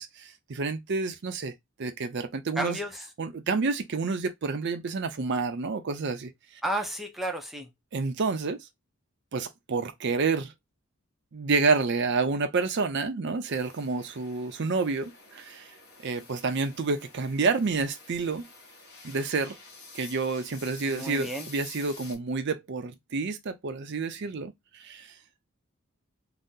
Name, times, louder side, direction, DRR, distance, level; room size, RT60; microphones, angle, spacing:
voice 1, 0.0-1.5 1.8-2.8 3.2-6.3 7.9-8.7 9.3-10.5 11.3-15.7 16.0-18.4 19.0-19.6 19.9-24.5 24.8-25.1, right 4 dB, 55° right, 0.5 m, -29 dB
voice 2, 2.6-3.1 6.6-7.7 20.9-21.5, right 1 dB, ahead, 0.4 m, -32 dB
sound 1, 13.4-22.1, left 3 dB, 50° left, 1.0 m, -49 dB
2.7 x 2.0 x 3.5 m
head